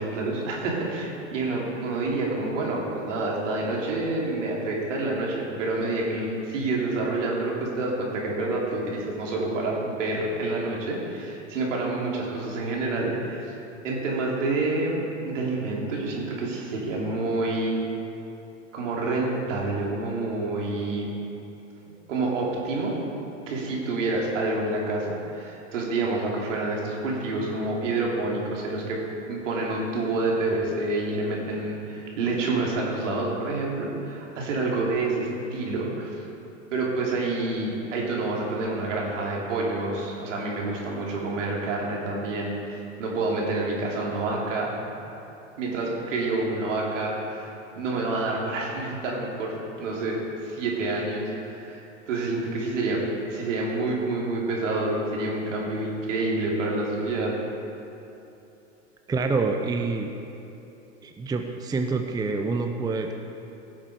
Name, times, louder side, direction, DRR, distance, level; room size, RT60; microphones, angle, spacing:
voice 1, 0.0-13.5 13.8-17.8 18.7-21.1 21.8-23.0 23.5-29.0 29.3-36.2 36.7-44.8 45.6-47.5 47.7-53.0 53.3-57.3, right 2 dB, 75° right, -3 dB, 3.1 m, -28 dB
voice 2, 59.1-60.1 61.0-63.1, right 4 dB, 10° right, 5 dB, 0.6 m, -27 dB
16.0 x 7.4 x 4.9 m, 2.9 s
hypercardioid pair, 100°, 38 cm